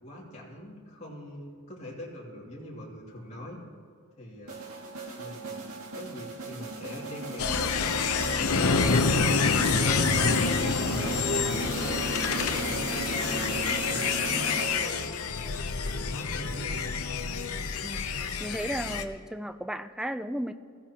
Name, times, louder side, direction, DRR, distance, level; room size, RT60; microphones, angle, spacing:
voice 1, 0.0-3.6 4.2-4.6 5.1-5.6 5.9-8.6 9.1-9.5 9.8-10.8 11.2-15.1 15.6-16.9, left 1 dB, 30° left, -5 dB, 2.7 m, -42 dB
sound 1, 4.5-15.1, right 2 dB, 75° right, 2.0 m, -36 dB
sound 2, 7.4-19.0, left 5 dB, 90° left, 0.8 m, -27 dB
voice 2, 18.4-20.5, equal, 5° right, 10 dB, 0.4 m, -34 dB
22.0 x 15.0 x 3.0 m, 2.2 s
head